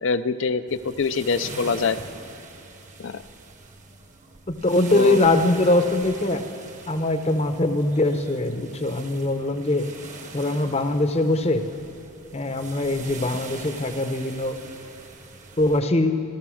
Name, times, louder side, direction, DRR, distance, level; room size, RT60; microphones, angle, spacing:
voice 1, 0.0-2.0 3.0-3.2 4.9-5.2, left 4 dB, 55° left, 14 dB, 0.5 m, -24 dB
sound 1, 0.7-15.8, right 3 dB, 35° right, 1.0 m, -42 dB
voice 2, 4.5-6.4 6.9-9.9 10.3-11.6 12.3-14.6 15.6-16.2, left 2 dB, 30° left, 8 dB, 0.8 m, -22 dB
16.0 x 13.5 x 6.3 m, 2.5 s
head